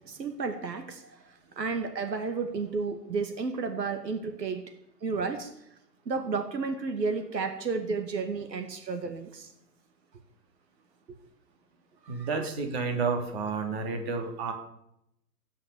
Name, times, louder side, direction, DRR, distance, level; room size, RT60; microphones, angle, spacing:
voice 1, 0.1-1.2 1.6-4.7 5.0-5.5 6.1-9.5 12.1-12.5, right 4 dB, 80° right, 7 dB, 2.3 m, -32 dB
voice 2, 12.1-14.5, right 4 dB, 40° right, 4 dB, 3.3 m, -30 dB
16.0 x 10.0 x 7.1 m, 0.79 s
hypercardioid pair, 150°, 49 cm